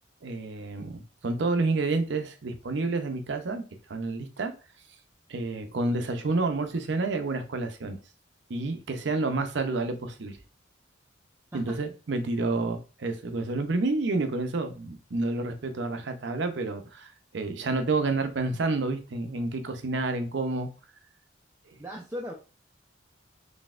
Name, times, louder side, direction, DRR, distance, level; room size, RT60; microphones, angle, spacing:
voice 1, 0.2-3.6 3.9-4.5 5.3-8.0 8.5-10.4 11.5-20.7 21.7-21.8, right 3 dB, 65° right, 0.6 m, -29 dB
voice 2, 21.8-22.3, equal, 10° right, 0.4 m, -37 dB
4.1 x 3.3 x 2.4 m
head